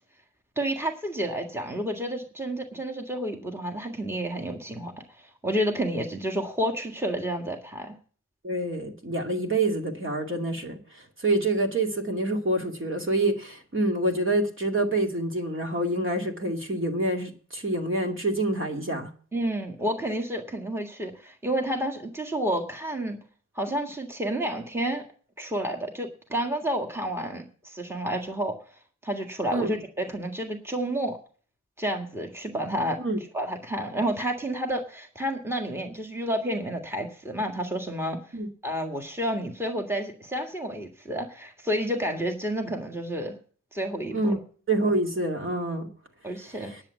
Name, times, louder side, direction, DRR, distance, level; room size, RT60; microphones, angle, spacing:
voice 1, 0.5-7.9 19.3-23.2 23.5-25.0 25.4-28.5 29.0-31.2 31.8-33.0 33.3-38.4 38.6-43.3 43.7-44.4 46.2-46.7, right 1 dB, 10° right, 3 dB, 1.7 m, -30 dB
voice 2, 8.4-10.8 11.2-19.1 29.5-29.7 33.0-33.2 38.3-38.5 44.1-44.4 44.7-45.9 46.6-46.8, right 2 dB, 40° right, 2 dB, 2.4 m, -27 dB
10.5 x 7.4 x 8.2 m, 0.43 s
wide cardioid pair, 85°, 31 cm